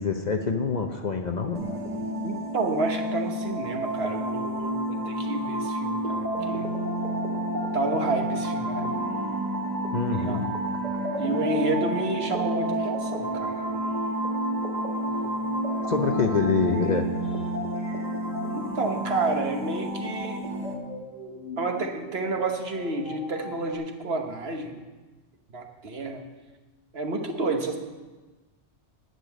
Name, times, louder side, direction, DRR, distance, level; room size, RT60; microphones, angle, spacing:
voice 1, 0.0-1.6 9.9-10.5 15.9-17.1, left 4 dB, 40° left, 4 dB, 0.8 m, -25 dB
sound 1, 1.5-20.7, right 1 dB, 35° right, 1.4 m, -30 dB
voice 2, 2.2-6.7 7.7-8.9 10.1-10.4 11.2-13.6 18.5-20.4 21.6-24.8 25.5-26.2 26.9-27.8, right 3 dB, 55° right, 4 dB, 1.4 m, -30 dB
sound 2, 15.0-23.7, left 2 dB, 85° left, 2.1 m, -43 dB
10.5 x 6.8 x 9.1 m, 1.3 s
omnidirectional pair, 1.3 m